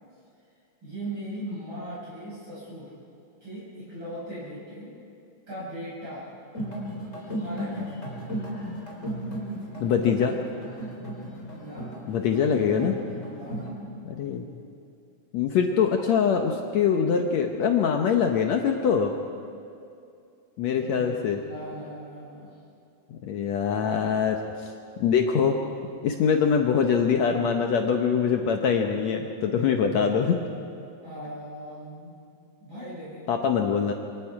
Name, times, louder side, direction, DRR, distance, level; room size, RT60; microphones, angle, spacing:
voice 1, 0.8-2.9 3.4-4.9 5.5-6.3 7.3-8.5 11.5-11.9 13.3-13.6 20.8-22.6 31.0-32.1 32.6-33.3, right 1 dB, 35° right, -9 dB, 6.8 m, -39 dB
sound 1, 6.5-13.7, right 1 dB, 20° left, 3.8 m, -35 dB
voice 2, 9.8-10.4 12.1-13.0 14.1-14.5 15.3-19.1 20.6-21.4 23.1-24.7 25.0-25.6 26.0-30.4 33.3-33.9, left 7 dB, 65° left, 3 dB, 2.0 m, -23 dB
27.0 x 24.5 x 4.8 m, 2.5 s
omnidirectional pair, 3.7 m